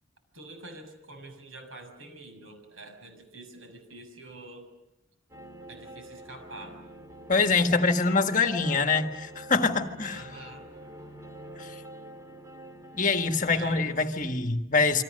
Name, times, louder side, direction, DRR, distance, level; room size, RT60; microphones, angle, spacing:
voice 1, 0.3-4.7 5.7-6.8 10.1-10.7 13.4-14.0, right 2 dB, 90° right, 7 dB, 6.6 m, -46 dB
sound 1, 5.3-13.8, right 1 dB, 15° right, 2.7 m, -46 dB
voice 2, 7.3-10.2 11.6-11.7 13.0-15.0, left 4 dB, 40° left, 6 dB, 1.6 m, -24 dB
28.5 x 25.5 x 6.6 m, 0.93 s
head